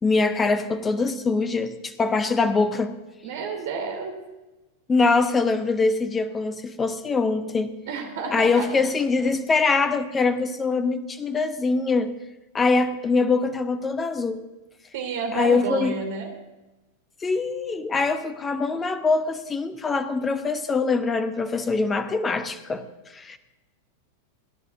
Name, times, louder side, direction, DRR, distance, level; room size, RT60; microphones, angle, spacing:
voice 1, 0.0-2.9 4.9-7.7 8.3-12.1 12.5-14.4 15.3-15.9 17.2-22.8 23.1-23.4, left 4 dB, 15° left, 11 dB, 1.1 m, -23 dB
voice 2, 3.2-4.1 7.9-8.7 14.9-16.3, right 4 dB, 55° right, 4 dB, 2.8 m, -30 dB
29.5 x 11.0 x 2.7 m, 1.1 s
figure-of-eight pair, 90°, 0 cm